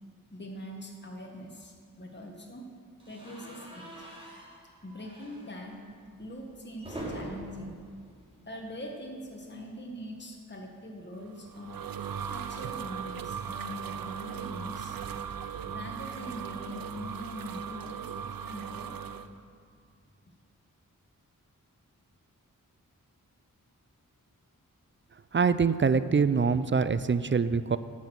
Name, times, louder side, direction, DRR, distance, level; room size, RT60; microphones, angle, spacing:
voice 1, 0.3-2.6 3.1-4.1 4.8-5.8 6.2-7.8 8.5-11.8 12.3-15.0 15.6-18.9, equal, 30° left, 1 dB, 1.4 m, -42 dB
sound 1, 3.0-9.0 9.3-9.5 9.8-9.9 11.1-13.5, right 1 dB, 15° right, 3.2 m, -46 dB
sound 2, 11.3-19.3, right 8 dB, 85° right, 0.6 m, -38 dB
voice 2, 25.3-27.8, right 5 dB, 35° right, 14 dB, 0.4 m, -24 dB
11.0 x 6.3 x 7.7 m, 2.1 s
cardioid pair, 50°, 34 cm